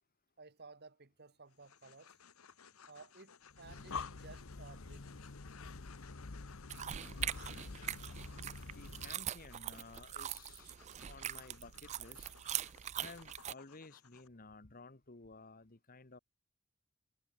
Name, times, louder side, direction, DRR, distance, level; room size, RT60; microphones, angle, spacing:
voice 1, 0.4-2.2 2.9-3.3 3.6-5.2 11.3-11.4, right 4 dB, 50° right, 1.8 m, -57 dB
sound 1, 1.5-14.3, left 7 dB, 85° left, 1.6 m, -62 dB
Breathing, 3.5-9.3, left 4 dB, 65° left, 1.0 m, -47 dB
sound 2, 6.7-13.5, right 11 dB, 30° right, 0.3 m, -42 dB
voice 2, 8.6-10.7 11.1-12.3 13.0-16.2, left 3 dB, 40° left, 1.4 m, -54 dB
head